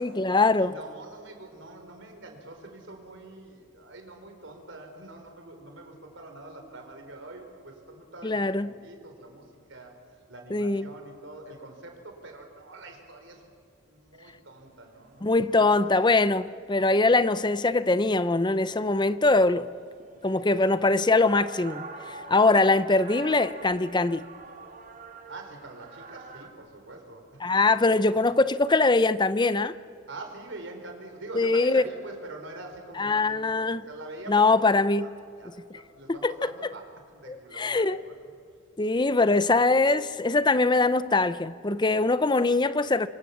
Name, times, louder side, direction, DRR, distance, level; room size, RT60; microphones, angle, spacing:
voice 1, 0.0-0.7 8.2-8.7 10.5-10.9 15.2-19.7 20.2-24.2 27.4-29.7 31.3-31.8 33.0-33.8 34.3-35.1 36.1-36.5 37.3-38.0 38.8-43.1, left 3 dB, 20° left, 0.6 m, -22 dB
voice 2, 0.6-9.9 10.3-13.4 13.8-15.8 16.1-16.3 16.8-17.0 20.3-20.8 25.3-27.5 30.1-34.7 35.0-35.1 35.4-38.1, right 2 dB, 60° right, 4.6 m, -45 dB
sound 1, 14.5-14.6 15.0-15.1 15.3-15.7 16.1-17.5 17.9-26.5, right 4 dB, 40° right, 2.1 m, -45 dB
26.5 x 24.5 x 7.3 m
head